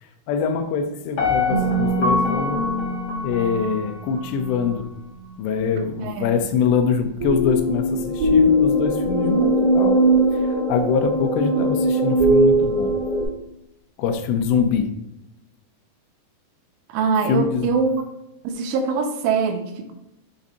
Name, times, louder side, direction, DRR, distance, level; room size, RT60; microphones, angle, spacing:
voice 1, 0.0-2.6 3.2-4.9 5.4-10.0 10.3-13.0 14.0-15.0 17.2-17.7, left 6 dB, 85° left, 7 dB, 2.8 m, -24 dB
Piano, 1.2-4.2 4.7-4.8, left 3 dB, 55° left, 1.8 m, -26 dB
sound 1, 1.5-4.6 7.2-13.2, right 1 dB, 55° right, 1.2 m, -21 dB
voice 2, 6.0-6.3 16.9-18.0 18.4-19.9, right 5 dB, 80° right, 6 dB, 2.9 m, -23 dB
7.2 x 5.3 x 4.0 m, 0.89 s
omnidirectional pair, 5.2 m